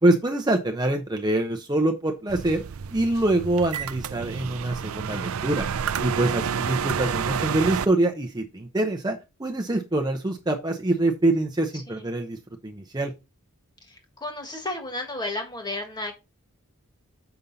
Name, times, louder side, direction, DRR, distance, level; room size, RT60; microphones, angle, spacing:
voice 1, 0.0-2.6 2.9-5.6 6.0-13.1, right 2 dB, 20° right, 3 dB, 0.7 m, -25 dB
sound 1, 2.3-7.9, right 7 dB, 75° right, 0.4 m, -29 dB
voice 2, 11.7-12.1 13.9-16.2, left 2 dB, 20° left, 5 dB, 1.6 m, -33 dB
6.9 x 5.4 x 4.0 m, 0.26 s
head